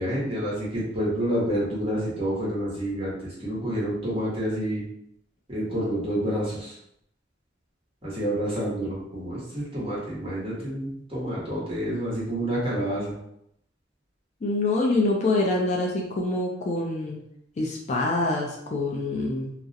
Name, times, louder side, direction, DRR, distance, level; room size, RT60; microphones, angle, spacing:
voice 1, 0.0-4.8 5.5-6.8 8.0-13.2, equal, 30° right, -7 dB, 1.0 m, -28 dB
voice 2, 14.4-17.2 17.6-19.5, left 2 dB, 35° left, -1 dB, 0.4 m, -25 dB
2.3 x 2.0 x 2.7 m, 0.76 s
head